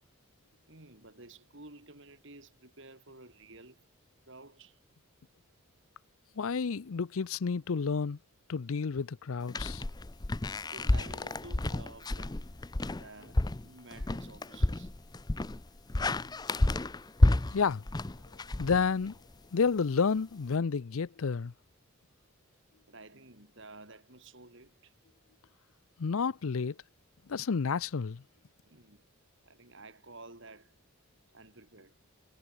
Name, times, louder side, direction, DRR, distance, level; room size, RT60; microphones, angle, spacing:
voice 1, 0.7-3.9 4.3-4.8 10.6-12.4 12.9-14.9 22.9-24.9 28.6-29.1 29.4-30.8 31.3-32.0, right 2 dB, 55° right, 4.7 m, -52 dB
voice 2, 6.4-8.2 8.5-9.8 17.5-17.8 18.6-19.1 19.5-21.5 26.0-26.8 27.3-28.2, left 5 dB, 70° left, 0.5 m, -30 dB
sound 1, 9.5-19.3, left 2 dB, 20° left, 0.5 m, -30 dB
head